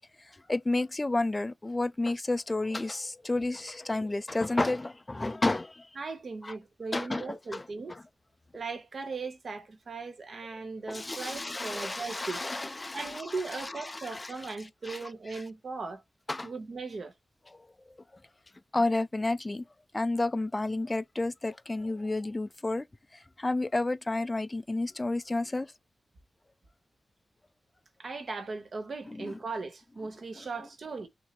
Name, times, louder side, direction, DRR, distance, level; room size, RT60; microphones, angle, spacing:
voice 1, 0.5-5.9 6.4-6.5 6.9-7.7 10.9-14.3 14.9-15.0 16.3-16.5 18.7-19.7 19.9-22.9 23.1-25.7 29.1-29.3, left 2 dB, 20° left, 0.3 m, -31 dB
voice 2, 6.0-8.0 8.5-12.5 12.9-16.0 16.4-17.1 28.0-31.1, right 4 dB, 50° right, 1.0 m, -38 dB
6.0 x 2.7 x 2.9 m
wide cardioid pair, 170°, 0 cm